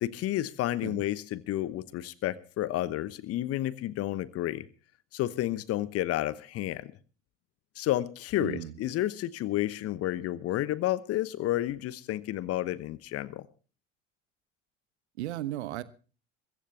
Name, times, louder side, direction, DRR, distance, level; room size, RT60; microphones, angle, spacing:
voice 1, 0.0-4.6 5.1-6.9 7.8-13.5, left 14 dB, 40° left, 1.1 m, -31 dB
voice 2, 8.4-8.7 15.2-15.8, right 14 dB, 65° right, 1.2 m, -35 dB
23.0 x 15.0 x 2.9 m
figure-of-eight pair, 65°, 36 cm